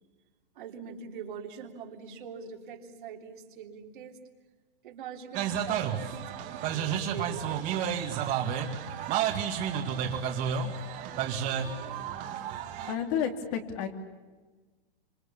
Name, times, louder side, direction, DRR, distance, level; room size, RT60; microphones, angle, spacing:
voice 1, 0.5-4.2 4.8-8.4, right 6 dB, 60° right, 2 dB, 3.4 m, -43 dB
sound 1, 5.3-12.9, right 8 dB, 30° right, 2.4 m, -31 dB
voice 2, 12.9-13.9, left 8 dB, 35° left, 5 dB, 2.9 m, -31 dB
26.5 x 26.5 x 7.2 m, 1.3 s
hypercardioid pair, 160°, 29 cm